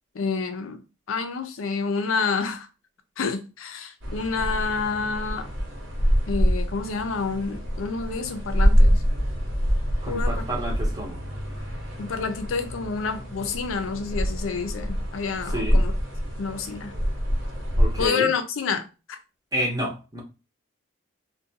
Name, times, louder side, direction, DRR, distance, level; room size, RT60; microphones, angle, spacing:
voice 1, 0.1-0.8 1.1-2.7 3.2-5.5 6.3-9.0 10.1-10.5 12.0-15.9 16.4-16.9 18.0-18.8 19.1-19.2, left 5 dB, 85° left, 0.4 m, -28 dB
sound 1, 4.0-18.1, equal, 75° right, 1.0 m, -25 dB
voice 2, 10.0-11.2 15.5-15.8 17.8-18.3 19.5-20.2, right 1 dB, 20° right, 0.6 m, -29 dB
2.4 x 2.2 x 2.7 m
head